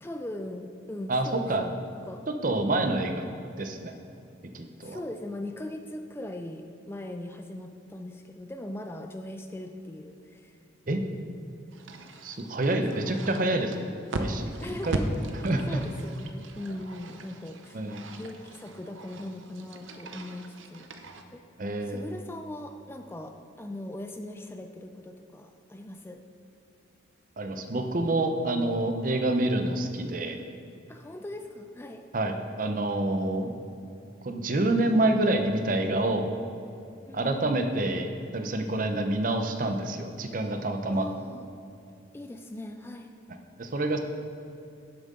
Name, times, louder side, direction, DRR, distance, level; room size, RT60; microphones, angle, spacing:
voice 1, 0.0-2.3 4.8-10.6 12.9-13.1 14.6-15.1 15.4-17.8 18.2-21.0 21.3-21.4 21.8-26.2 30.9-32.0 37.1-37.6 40.9-41.5 42.1-43.1, left 1 dB, 10° left, 5 dB, 0.3 m, -40 dB
voice 2, 1.1-1.6 2.4-3.2 3.6-3.9 4.5-5.0 10.9-11.0 12.2-15.0 15.4-15.8 17.7-18.0 21.6-22.0 27.4-30.4 32.1-33.5 34.2-36.3 37.1-41.0 43.6-44.0, right 2 dB, 45° right, 5 dB, 0.6 m, -27 dB
sound 1, 11.7-21.2, right 1 dB, 85° right, 0.7 m, -38 dB
10.5 x 7.5 x 3.7 m, 2.6 s
head